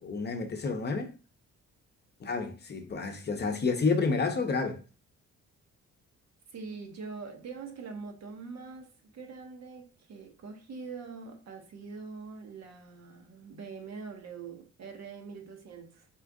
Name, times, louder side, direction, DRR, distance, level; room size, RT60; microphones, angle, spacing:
voice 1, 0.0-1.1 2.2-4.8, left 4 dB, 35° left, 0.7 m, -30 dB
voice 2, 6.5-16.1, right 5 dB, 60° right, 1.1 m, -43 dB
4.4 x 2.5 x 3.5 m
cardioid pair, 90°, 30 cm